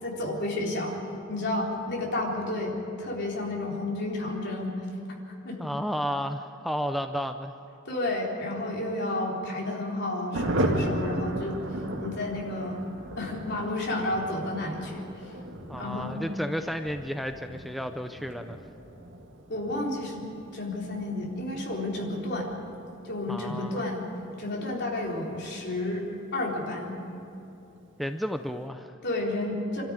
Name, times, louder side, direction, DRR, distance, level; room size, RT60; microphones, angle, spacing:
voice 1, 0.0-0.9 1.3-4.9 5.4-5.6 7.9-11.6 12.0-12.8 13.2-15.0 15.8-16.2 19.5-20.2 20.5-22.5 23.0-24.0 24.4-26.0 26.3-27.0 29.0-29.8, left 2 dB, 60° left, -2 dB, 3.9 m, -31 dB
voice 2, 5.6-7.5 15.7-18.6 23.3-23.8 28.0-29.0, equal, ahead, 7 dB, 0.5 m, -32 dB
Thunder, 10.3-26.4 26.7-26.8 27.1-27.2 27.5-27.9, right 1 dB, 65° right, 2.3 m, -36 dB
25.5 x 13.0 x 9.7 m, 2.8 s
head